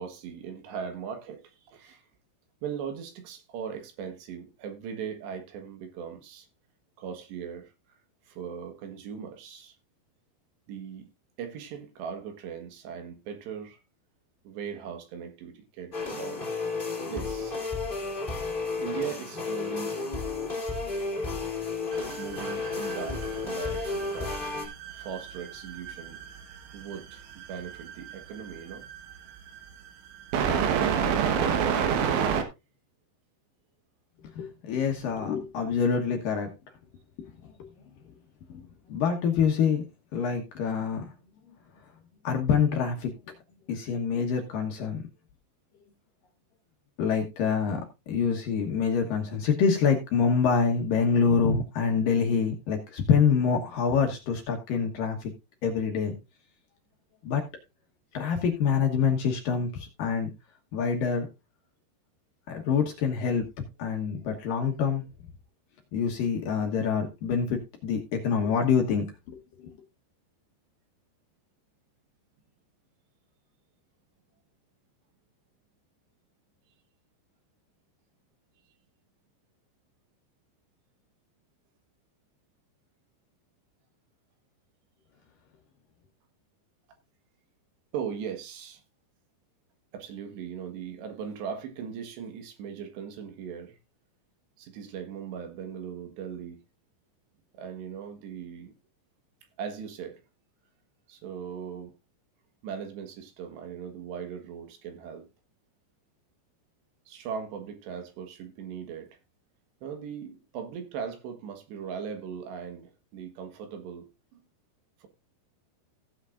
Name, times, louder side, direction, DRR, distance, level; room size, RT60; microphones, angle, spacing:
voice 1, 0.0-2.1 2.6-6.5 7.0-7.7 8.3-9.8 10.7-11.1 11.4-13.8 14.5-16.5 17.1-17.6 18.8-20.0 20.5-20.8 22.2-24.4 24.9-26.2 26.7-28.9 87.9-88.8 89.9-93.8 94.6-96.6 97.5-98.7 99.6-100.2 101.1-101.9 102.6-105.3 107.1-109.1 109.8-114.4 115.0-115.1, right 7 dB, 75° right, 3.5 m, -39 dB
sound 1, 15.9-24.7, left 3 dB, 15° left, 2.7 m, -32 dB
sound 2, 21.9-32.4, right 7 dB, 90° right, 3.7 m, -30 dB
voice 2, 34.4-36.5 37.2-37.3 37.6-37.7 38.5-38.6 38.9-39.8 40.1-41.1 42.2-43.1 43.7-45.0 47.0-55.3 55.6-56.1 57.2-57.4 58.1-60.3 60.7-61.3 62.5-63.4 63.8-65.0 65.9-69.7, left 6 dB, 65° left, 2.4 m, -26 dB
16.0 x 8.1 x 2.5 m
omnidirectional pair, 5.2 m